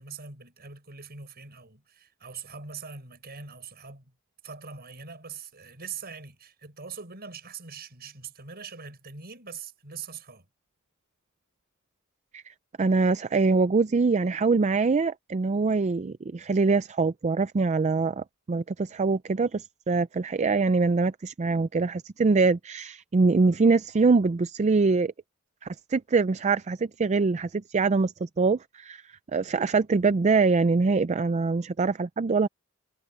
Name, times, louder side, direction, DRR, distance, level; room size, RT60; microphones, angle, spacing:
voice 1, 0.0-4.1 4.4-10.5, right 6 dB, 50° right, 6.3 m, -42 dB
voice 2, 12.3-25.1 25.6-29.0 29.3-32.5, right 4 dB, 30° right, 0.4 m, -24 dB
head